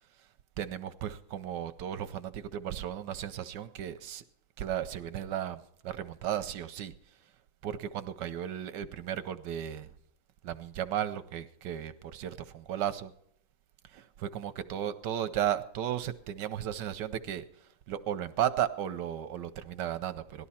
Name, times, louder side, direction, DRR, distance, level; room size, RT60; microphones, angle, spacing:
voice 1, 0.0-4.2 4.6-7.3 7.6-9.9 10.4-13.1 13.8-20.5, right 10 dB, 70° right, 1.1 m, -35 dB
18.0 x 12.5 x 4.2 m
omnidirectional pair, 2.4 m